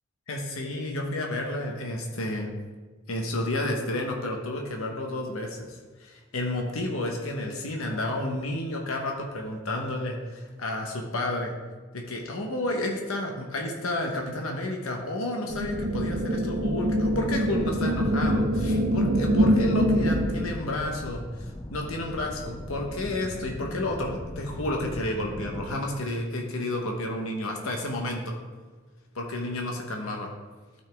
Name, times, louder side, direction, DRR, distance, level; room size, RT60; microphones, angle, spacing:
voice 1, 0.3-2.5 3.1-11.5 11.9-28.4 29.1-30.3, left 1 dB, 90° left, 1 dB, 1.2 m, -31 dB
sound 1, 15.5-20.5, equal, 55° right, 0.9 m, -24 dB
sound 2, 19.5-25.8, left 1 dB, 15° left, 0.5 m, -39 dB
12.5 x 5.6 x 3.6 m, 1.4 s
head